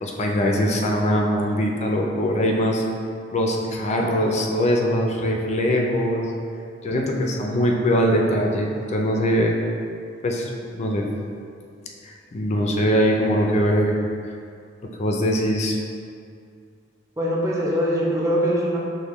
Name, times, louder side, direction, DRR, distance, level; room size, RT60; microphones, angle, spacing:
voice 1, 0.0-2.8 3.3-6.3 6.8-9.6 10.2-10.5 10.8-11.1 12.0-14.0 15.0-15.8, equal, 35° left, 0 dB, 0.4 m, -22 dB
voice 2, 17.2-18.8, equal, 15° right, -4 dB, 0.5 m, -22 dB
5.2 x 2.1 x 3.0 m, 2.3 s
head